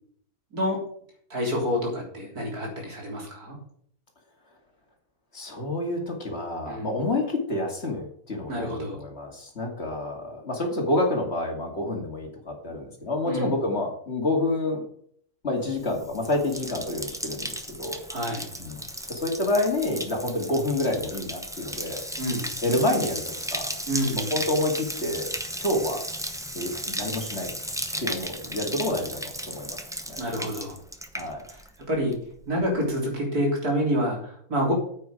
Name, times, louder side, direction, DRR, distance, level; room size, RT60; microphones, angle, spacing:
voice 1, 1.3-3.6 6.7-6.9 8.5-9.0 13.3-13.5 18.1-18.5 22.2-22.5 23.9-24.3 30.2-30.8 31.5-31.6 31.9-32.1 32.5-34.7, equal, 75° right, -1 dB, 4.0 m, -27 dB
voice 2, 5.3-14.8 15.4-18.0 18.6-18.8 19.1-22.0 22.6-23.2 23.5-23.7 24.3-25.3 25.6-26.0 26.5-27.5 28.0-29.8 30.1-30.3 31.1-31.4, left 2 dB, 45° left, 1 dB, 2.6 m, -28 dB
Bathtub (filling or washing), 15.8-31.9 32.1-32.7, equal, 5° right, 0.7 m, -35 dB
9.4 x 8.4 x 4.9 m, 0.63 s
omnidirectional pair, 1.6 m